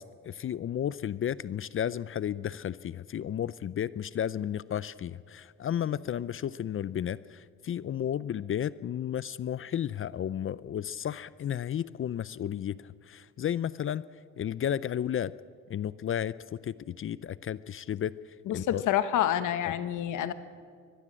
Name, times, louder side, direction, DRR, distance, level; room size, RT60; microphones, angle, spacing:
voice 1, 0.0-14.1 14.4-15.3 15.7-18.2 18.5-18.8 19.7-19.8, left 10 dB, 45° left, 18 dB, 0.5 m, -33 dB
voice 2, 18.5-20.3, left 11 dB, 85° left, 12 dB, 1.3 m, -28 dB
23.5 x 20.0 x 7.6 m, 2.1 s
cardioid pair, 90°, 30 cm